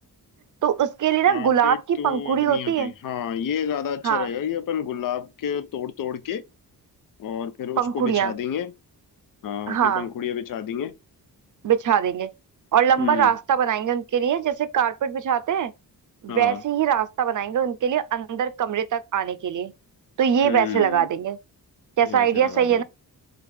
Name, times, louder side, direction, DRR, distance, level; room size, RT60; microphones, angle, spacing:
voice 1, 0.6-2.9 4.0-4.3 7.8-8.3 9.7-10.1 11.6-12.3 12.7-15.7 16.2-19.7 20.2-21.4 22.0-22.8, right 9 dB, 50° right, 0.5 m, -22 dB
voice 2, 1.3-6.4 7.2-8.7 9.4-10.9 13.0-13.3 16.3-16.6 20.4-21.1 22.0-22.8, left 8 dB, 55° left, 0.6 m, -30 dB
4.8 x 2.4 x 3.4 m
wide cardioid pair, 120°, 39 cm